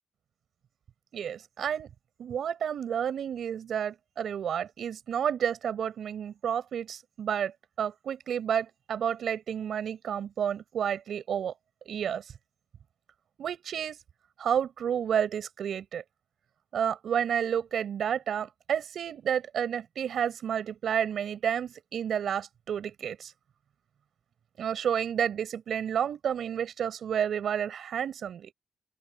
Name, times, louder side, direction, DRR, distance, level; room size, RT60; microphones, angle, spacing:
voice 1, 1.1-1.9 2.2-11.5 11.9-12.3 13.4-14.0 14.4-16.0 16.7-23.3 24.6-28.5, right 8 dB, 90° right, 5.5 m, -30 dB
open air
cardioid pair, 95°, 0 cm